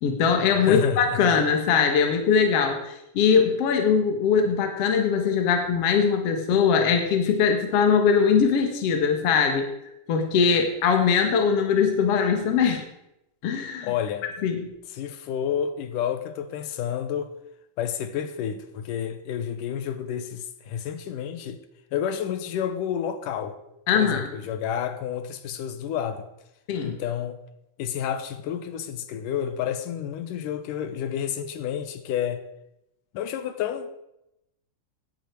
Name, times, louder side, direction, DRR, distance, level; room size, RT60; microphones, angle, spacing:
voice 1, 0.0-9.7 10.1-12.8 13.4-13.9 14.4-14.7 23.9-24.3 26.7-27.0, left 6 dB, 55° left, 2.2 m, -21 dB
voice 2, 0.6-1.3 13.8-14.3 14.9-17.3 17.8-21.6 21.9-23.6 23.9-26.3 26.8-27.4 27.8-32.4 33.1-33.9, left 9 dB, 90° left, 2.6 m, -30 dB
16.5 x 10.5 x 4.6 m
omnidirectional pair, 3.7 m